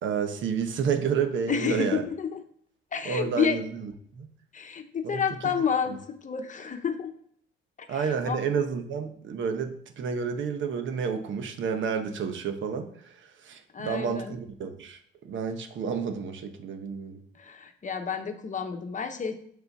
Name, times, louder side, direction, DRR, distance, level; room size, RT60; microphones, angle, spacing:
voice 1, 0.0-2.1 3.0-4.3 5.0-5.2 7.9-17.2, right 6 dB, 75° right, 7 dB, 1.0 m, -30 dB
voice 2, 1.5-2.4 2.9-3.7 4.5-7.1 7.8-8.6 13.7-14.4 17.3-19.3, left 6 dB, 40° left, 7 dB, 1.0 m, -30 dB
6.8 x 4.4 x 5.9 m, 0.65 s
cardioid pair, 90°, 20 cm